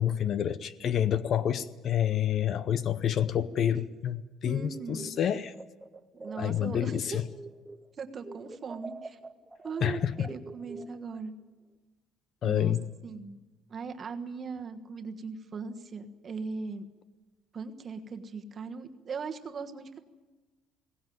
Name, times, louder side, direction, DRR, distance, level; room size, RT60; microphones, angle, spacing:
voice 1, 0.0-5.5 6.4-7.3 9.8-10.3 12.4-12.9, left 10 dB, 40° left, 15 dB, 0.7 m, -28 dB
voice 2, 4.5-5.1 6.1-7.2 7.9-9.2 9.6-11.4 12.4-12.8 13.0-13.4 13.7-16.9 17.5-20.0, right 5 dB, 30° right, 6 dB, 1.4 m, -39 dB
sound 1, 4.7-7.9 8.2-11.2, right 3 dB, 10° right, 0.8 m, -46 dB
21.5 x 18.0 x 9.4 m, 1.2 s
cardioid pair, 160°, 0 cm